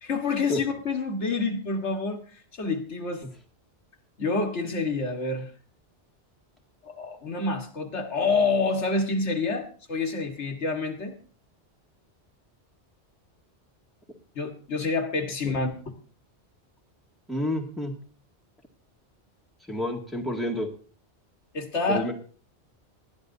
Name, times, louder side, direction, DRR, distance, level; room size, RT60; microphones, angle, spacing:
voice 1, 0.0-3.2 4.2-5.5 6.8-11.2 14.4-15.7 21.5-22.1, left 3 dB, 85° left, 3 dB, 1.9 m, -28 dB
voice 2, 17.3-17.9 19.7-20.7 21.9-22.1, left 1 dB, ahead, -1 dB, 1.9 m, -29 dB
20.0 x 12.5 x 2.7 m, 0.41 s
omnidirectional pair, 1.1 m